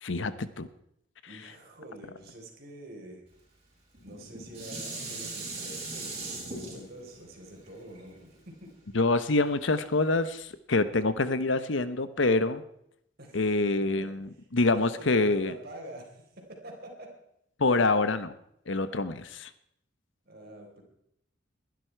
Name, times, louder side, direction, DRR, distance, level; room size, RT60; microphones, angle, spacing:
voice 1, 0.0-0.7 8.9-12.6 13.3-15.5 17.6-18.3 18.7-19.5, left 3 dB, 70° left, 13 dB, 0.9 m, -26 dB
voice 2, 1.3-3.2 4.0-8.7 13.2-13.4 13.8-14.1 14.7-17.1 20.3-20.8, right 1 dB, 50° right, 1 dB, 4.2 m, -46 dB
Dishes pots and pans, 3.9-9.2 9.8-9.9, right 3 dB, 30° right, 6.8 m, -40 dB
21.5 x 11.5 x 4.6 m, 0.75 s
head